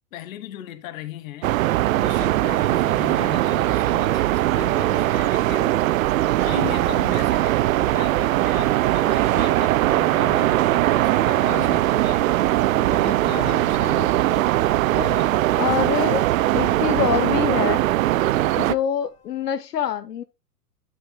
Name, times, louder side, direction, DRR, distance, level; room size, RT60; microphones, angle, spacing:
voice 1, 0.1-5.8 6.4-12.3 12.8-14.5 14.9-16.0 16.6-17.0, left 12 dB, 55° left, 1.4 m, -37 dB
sound 1, 1.4-18.8, right 15 dB, 55° right, 0.6 m, -20 dB
sound 2, 10.5-19.5, left 7 dB, 30° left, 3.1 m, -52 dB
voice 2, 15.6-16.2 16.5-17.8 18.6-20.2, left 9 dB, 75° left, 0.9 m, -25 dB
11.5 x 7.4 x 2.2 m
hypercardioid pair, 110°, 48 cm